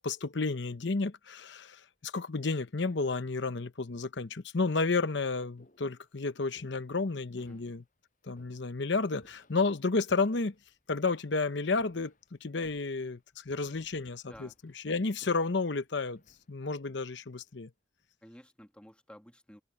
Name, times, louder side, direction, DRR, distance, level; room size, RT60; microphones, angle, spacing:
voice 1, 0.0-7.8 8.2-10.5 10.9-12.1 12.4-16.2 16.5-17.7, left 3 dB, 65° left, 0.9 m, -31 dB
sound 1, 1.8-2.2 3.2-3.3 4.1-4.2 4.6-18.1, left 1 dB, 40° left, 7.0 m, -66 dB
voice 2, 14.2-14.5 18.2-19.6, equal, 5° left, 1.5 m, -53 dB
head